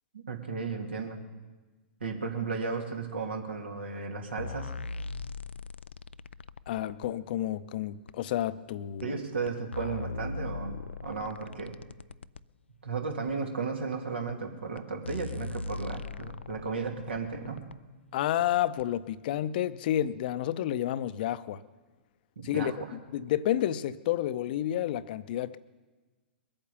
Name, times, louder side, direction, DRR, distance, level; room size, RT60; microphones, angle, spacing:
voice 1, 0.1-1.2 2.0-4.9 9.0-11.8 12.8-17.7 22.4-22.9, right 4 dB, 80° right, 2 dB, 2.6 m, -35 dB
sound 1, 4.4-7.1 8.1-8.2 9.0-9.1 9.5-12.4 13.3-13.4 14.3-14.4 14.8-14.9 15.0-17.8 18.8-18.9, left 4 dB, 85° left, 0.4 m, -40 dB
voice 2, 6.7-9.2 18.1-21.6 22.4-22.7 23.1-25.6, left 12 dB, 55° left, 15 dB, 0.7 m, -30 dB
21.5 x 8.8 x 7.0 m, 1.3 s
figure-of-eight pair, 110°, 6 cm